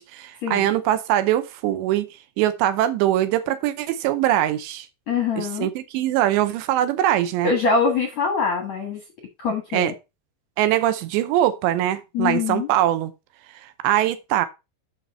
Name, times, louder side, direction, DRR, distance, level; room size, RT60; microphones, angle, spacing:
voice 1, 0.0-2.1 2.4-4.9 5.4-7.5 9.7-9.9 10.6-13.1 13.6-14.5, right 13 dB, 80° right, 2.6 m, -22 dB
voice 2, 5.1-5.7 7.4-9.0 9.4-9.9 12.1-12.7, left 5 dB, 70° left, 1.6 m, -23 dB
9.6 x 6.3 x 4.2 m
omnidirectional pair, 5.7 m